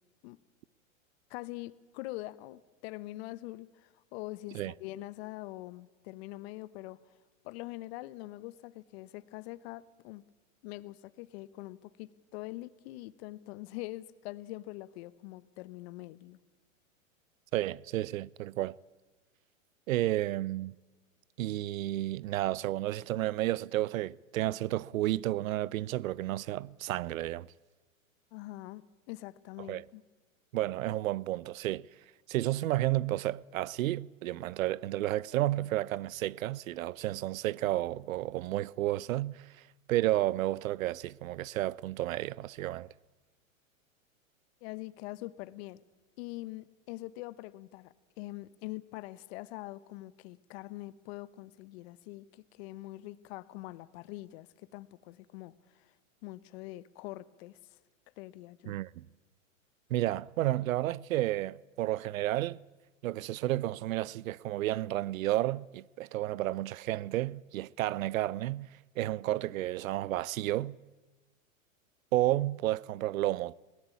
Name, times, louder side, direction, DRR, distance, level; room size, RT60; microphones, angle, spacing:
voice 1, 1.3-7.0 7.4-10.2 10.6-16.4 28.3-30.0 44.6-45.8 46.2-55.9 56.2-57.6 58.2-58.8, left 18 dB, 50° left, 1.1 m, -44 dB
voice 2, 17.5-18.8 19.9-20.8 21.4-27.5 29.6-29.8 30.5-31.9 32.3-39.5 39.9-42.9 58.7-59.1 59.9-62.6 63.0-68.7 69.0-70.8 72.1-73.5, right 15 dB, 75° right, 0.7 m, -31 dB
22.0 x 18.0 x 8.5 m
hypercardioid pair, 125°, 41 cm